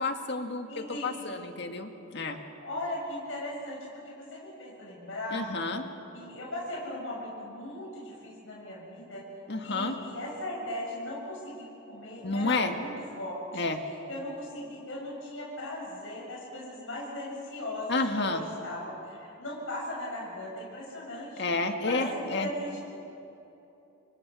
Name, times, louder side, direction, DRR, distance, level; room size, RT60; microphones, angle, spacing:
voice 1, 0.0-2.4 5.3-5.8 9.5-10.0 12.2-12.7 13.5-13.8 17.9-18.4 21.4-22.5, left 3 dB, 55° left, 5 dB, 2.0 m, -30 dB
voice 2, 0.7-1.5 2.4-5.4 6.1-9.2 9.6-13.7 14.1-21.5 21.9-22.8, left 1 dB, 75° left, -3 dB, 6.9 m, -38 dB
30.0 x 26.0 x 6.3 m, 2.9 s
head